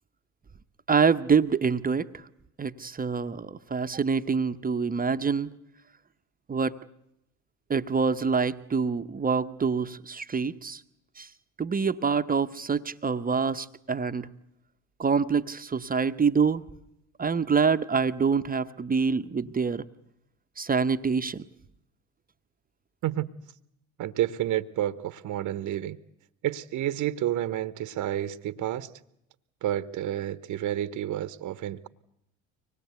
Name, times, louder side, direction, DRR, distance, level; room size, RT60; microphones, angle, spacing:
voice 1, 0.9-2.2 2.6-5.5 6.5-6.8 7.7-10.8 11.2-11.3 11.6-14.3 15.0-16.6 17.2-19.8 20.6-21.4, right 5 dB, 20° right, 0.8 m, -26 dB
voice 2, 23.0-23.4 24.0-26.0 26.4-28.9 29.6-31.9, right 12 dB, 45° right, 0.9 m, -30 dB
24.5 x 20.0 x 8.2 m
hypercardioid pair, 65°, 41 cm